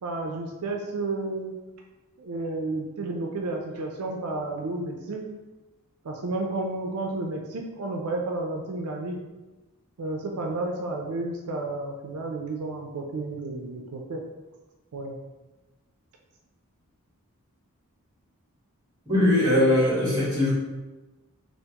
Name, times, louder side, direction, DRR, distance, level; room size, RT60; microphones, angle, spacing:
voice 1, 0.0-1.5 2.2-5.3 6.0-9.2 10.0-14.2 14.9-15.2, right 2 dB, 80° right, 1 dB, 0.4 m, -31 dB
voice 2, 19.1-20.5, left 1 dB, 20° right, -8 dB, 1.4 m, -21 dB
3.4 x 2.5 x 2.8 m, 1.1 s
head